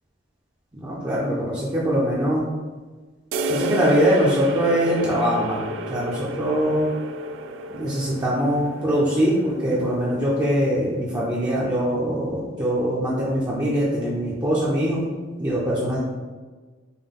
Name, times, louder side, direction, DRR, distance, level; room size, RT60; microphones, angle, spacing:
voice 1, 0.8-2.5 3.5-5.6 5.9-6.9 7.7-15.0 15.4-16.0, equal, 20° right, -7 dB, 0.6 m, -22 dB
sound 1, 3.3-10.8, right 1 dB, 80° right, 0.3 m, -31 dB
5.5 x 2.2 x 3.6 m, 1.4 s
head